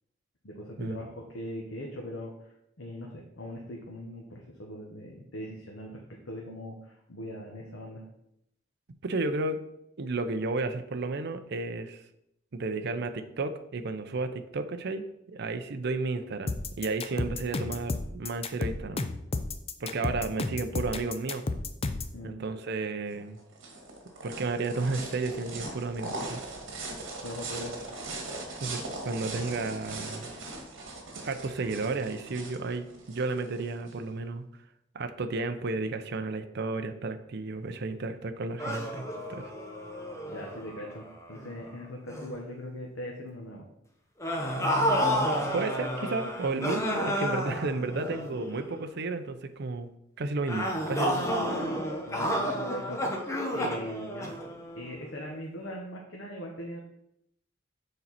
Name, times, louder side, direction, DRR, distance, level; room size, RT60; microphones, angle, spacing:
voice 1, 0.4-2.5 2.8-8.0 22.1-22.4 27.2-28.0 40.3-41.0 41.3-43.7 51.1-51.5 52.0-54.3 54.7-56.8, equal, 90° left, -1 dB, 1.1 m, -41 dB
voice 2, 9.0-9.6 10.0-12.0 12.5-19.0 19.8-21.4 22.2-23.4 24.2-26.4 28.6-30.3 31.2-34.4 34.9-39.0 39.3-39.5 45.5-49.9 50.2-51.3, right 3 dB, 60° right, 8 dB, 0.5 m, -32 dB
sound 1, 16.5-22.1, left 3 dB, 30° left, 0.5 m, -32 dB
sound 2, 23.1-34.0, right 2 dB, 80° right, 1.6 m, -40 dB
sound 3, 38.6-41.7 42.1-42.4 44.2-48.8 50.5-55.0, equal, 15° left, 0.8 m, -31 dB
6.8 x 4.3 x 4.1 m, 0.78 s
head